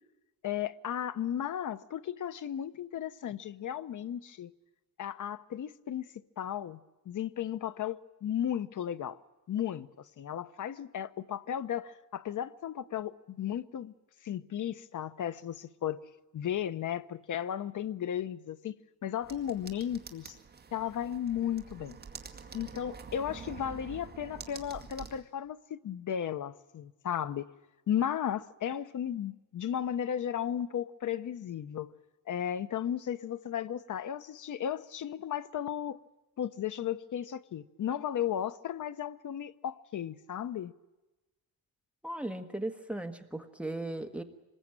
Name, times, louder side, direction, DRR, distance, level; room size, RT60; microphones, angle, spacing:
voice 1, 0.4-4.5 5.0-6.0 6.4-6.8 7.1-9.2 9.5-9.9 10.2-13.9 14.2-16.0 16.3-18.7 19.0-20.4 20.7-22.0 22.5-27.5 27.9-31.9 32.3-36.0 36.4-40.7, left 10 dB, 50° left, 0.9 m, -35 dB
sound 1, 19.2-25.2, right 5 dB, 25° right, 2.1 m, -47 dB
voice 2, 42.0-44.2, right 1 dB, 5° right, 1.4 m, -37 dB
25.5 x 20.5 x 8.9 m
cardioid pair, 150°, 38 cm